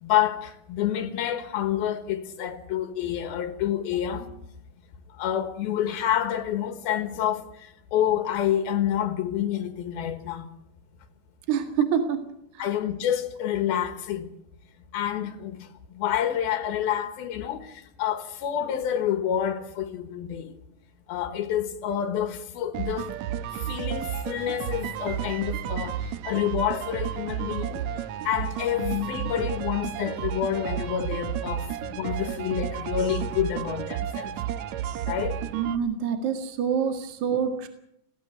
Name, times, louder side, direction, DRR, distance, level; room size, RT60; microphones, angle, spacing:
voice 1, 0.0-4.4 5.2-10.5 12.6-14.3 14.9-20.5 21.1-23.2 23.5-27.8 28.2-34.3 35.1-35.4, left 10 dB, 80° left, 3.2 m, -28 dB
voice 2, 11.5-12.2 12.5-12.7 35.5-37.7, right 7 dB, 55° right, 3.1 m, -26 dB
sound 1, 22.7-35.8, right 10 dB, 70° right, 1.8 m, -32 dB
20.0 x 17.0 x 8.0 m
omnidirectional pair, 4.3 m